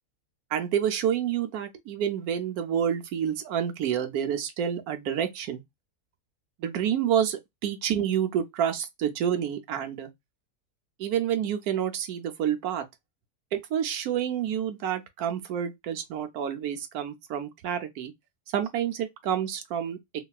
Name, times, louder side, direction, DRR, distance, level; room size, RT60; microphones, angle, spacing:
voice 1, 0.5-5.6 6.6-10.1 11.0-12.8 13.5-18.1 18.5-20.0, right 9 dB, 75° right, 1.0 m, -28 dB
2.8 x 2.6 x 2.3 m
omnidirectional pair, 1.7 m